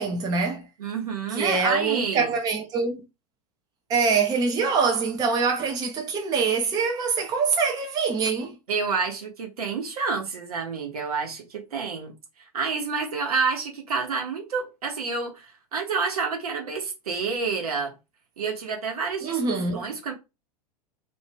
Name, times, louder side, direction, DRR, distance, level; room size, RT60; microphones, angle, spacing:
voice 1, 0.0-0.7 1.4-3.0 3.9-8.6 19.2-19.8, right 5 dB, 20° right, 0.5 m, -24 dB
voice 2, 0.8-2.3 8.7-17.9 18.4-20.1, right 5 dB, 65° right, 1.0 m, -29 dB
2.5 x 2.3 x 3.4 m
figure-of-eight pair, 90°, 21 cm